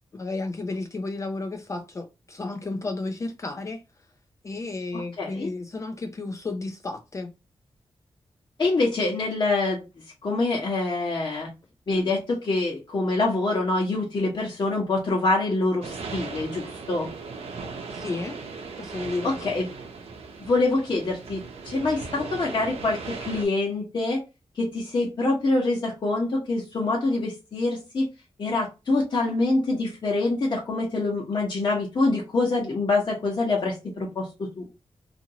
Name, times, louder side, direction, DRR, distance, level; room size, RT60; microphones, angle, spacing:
voice 1, 0.1-3.8 4.4-7.3 11.9-12.1 17.9-18.4 18.8-19.4, left 3 dB, 30° left, 0.3 m, -32 dB
voice 2, 5.2-5.5 8.6-9.8 10.2-11.5 11.9-17.1 19.2-19.7 20.4-24.2 24.5-28.1 28.4-34.3 34.6-34.7, left 2 dB, 50° left, 0.9 m, -25 dB
sound 1, 15.8-23.4, right 4 dB, 80° right, 0.7 m, -38 dB
2.8 x 2.5 x 2.7 m
wide cardioid pair, 105°, 10 cm